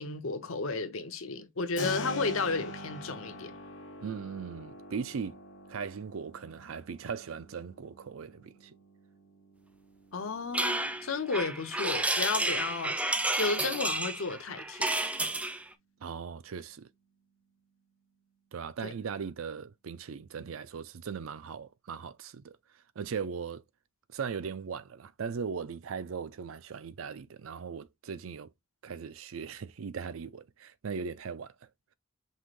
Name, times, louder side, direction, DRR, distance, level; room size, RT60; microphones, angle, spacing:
voice 1, 0.0-3.5 10.1-13.0 13.4-14.9 18.8-18.9, left 4 dB, 90° left, 0.9 m, -33 dB
Keyboard (musical), 1.8-12.4, left 1 dB, 60° left, 1.1 m, -44 dB
voice 2, 4.0-5.4 5.7-8.7 16.0-16.9 18.5-22.5 23.0-23.6 24.1-28.5 28.8-31.5, right 6 dB, 90° right, 0.5 m, -38 dB
sound 1, 10.5-15.6, right 2 dB, 5° right, 0.4 m, -31 dB
5.6 x 3.2 x 2.5 m
head